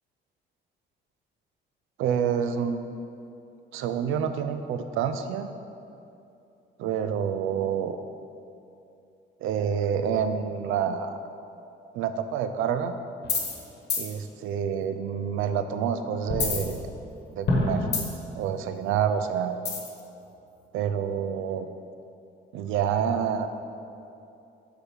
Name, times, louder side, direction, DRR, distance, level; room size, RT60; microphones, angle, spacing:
voice 1, 2.0-2.8 3.7-5.5 6.8-8.0 9.4-11.2 11.9-12.9 14.0-16.9 17.3-17.9 18.3-19.5 20.7-21.7 22.5-23.5, right 8 dB, 85° right, 9 dB, 0.4 m, -28 dB
sound 1, 13.2-13.6 13.9-14.1 16.3-17.2 17.5-18.3 19.6-20.0, left 3 dB, 55° left, 1.1 m, -26 dB
6.5 x 3.9 x 4.5 m, 2.7 s
cardioid pair, 90°, 20 cm